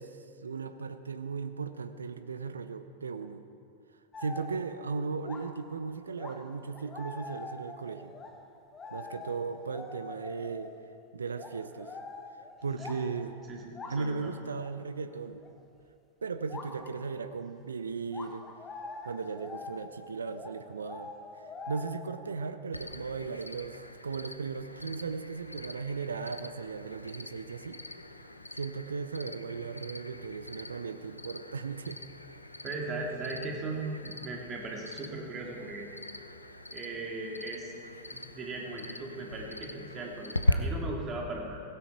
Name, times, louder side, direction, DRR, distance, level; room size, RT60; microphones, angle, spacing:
voice 1, 0.0-3.4 4.2-8.1 8.9-10.7 11.1-12.0 12.6-13.4 13.9-15.4 16.2-18.4 19.0-21.1 21.7-27.8 28.5-32.0, right 5 dB, 75° right, 11 dB, 0.6 m, -37 dB
sound 1, 4.1-4.7 5.2-5.6 6.2-10.8 11.3-13.3 13.8-14.1 14.6-14.8 15.4-15.5 16.5-16.9 18.1-22.2, left 3 dB, 20° left, 1.5 m, -44 dB
voice 2, 12.7-13.1 13.5-14.3 32.6-35.9 36.7-37.7 38.1-41.6, right 2 dB, 25° right, -1 dB, 2.7 m, -38 dB
Cricket, 22.7-40.5, left 2 dB, 85° left, 0.7 m, -40 dB
16.5 x 16.0 x 4.5 m, 2.5 s
figure-of-eight pair, 90°, 0 cm